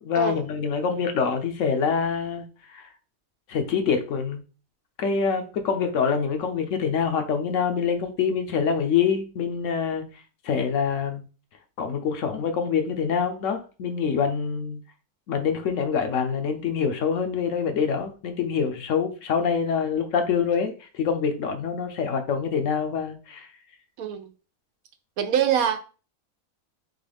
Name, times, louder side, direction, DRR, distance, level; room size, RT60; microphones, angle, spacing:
voice 1, 0.0-2.9 3.5-4.4 5.0-10.0 10.4-11.2 11.8-14.8 15.3-23.5, left 6 dB, 70° left, 1.0 m, -25 dB
voice 2, 25.2-25.8, right 9 dB, 85° right, 1.1 m, -24 dB
3.9 x 3.3 x 3.3 m
omnidirectional pair, 1.4 m